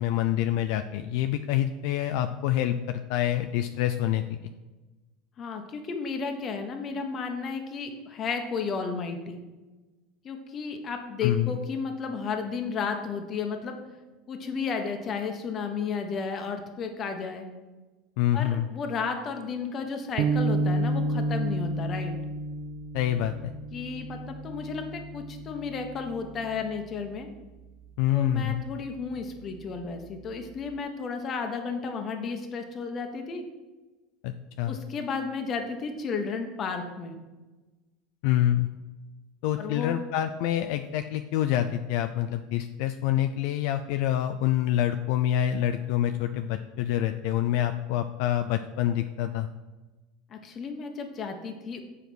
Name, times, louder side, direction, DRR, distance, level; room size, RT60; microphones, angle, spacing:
voice 1, 0.0-4.5 11.2-11.6 18.2-18.7 22.9-23.5 28.0-28.6 34.2-34.8 38.2-38.7 39.4-49.5, left 12 dB, 70° left, 7 dB, 0.4 m, -26 dB
voice 2, 5.4-9.4 10.2-13.8 14.3-17.4 18.3-22.1 23.7-24.2 24.4-27.3 28.1-33.5 34.7-37.1 39.6-39.9 50.3-51.8, left 5 dB, 35° left, 5 dB, 1.1 m, -33 dB
sound 1, 20.2-26.6, right 2 dB, 50° right, 0.4 m, -30 dB
7.2 x 4.9 x 6.1 m, 1.2 s
supercardioid pair, 130°, 0 cm